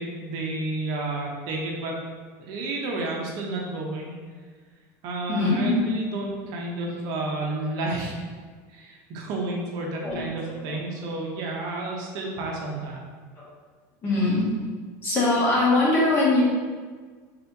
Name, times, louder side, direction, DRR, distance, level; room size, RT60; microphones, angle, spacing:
voice 1, 0.0-2.0 2.4-4.1 5.0-8.3 8.7-13.0, right 2 dB, 50° right, -1 dB, 0.7 m, -31 dB
voice 2, 5.3-5.8 10.0-10.2 14.0-14.5 15.0-16.4, left 2 dB, 25° left, -6 dB, 1.2 m, -21 dB
4.2 x 3.4 x 2.7 m, 1.5 s
supercardioid pair, 150°, 8 cm